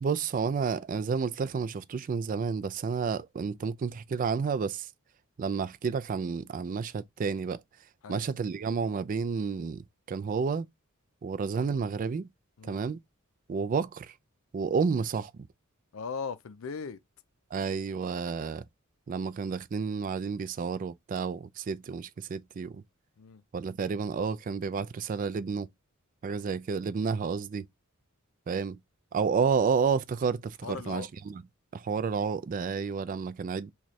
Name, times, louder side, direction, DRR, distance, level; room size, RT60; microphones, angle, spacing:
voice 1, 0.0-4.9 5.4-7.6 8.1-10.7 11.2-12.3 12.6-13.0 13.5-14.1 14.5-15.5 17.5-18.6 19.1-22.8 23.5-25.7 26.2-27.7 28.5-28.8 29.1-31.4 31.7-33.7, right 5 dB, 40° right, 0.3 m, -30 dB
voice 2, 15.9-17.0 23.2-23.4 30.6-31.1, left 5 dB, 70° left, 0.5 m, -38 dB
3.1 x 2.3 x 4.0 m
head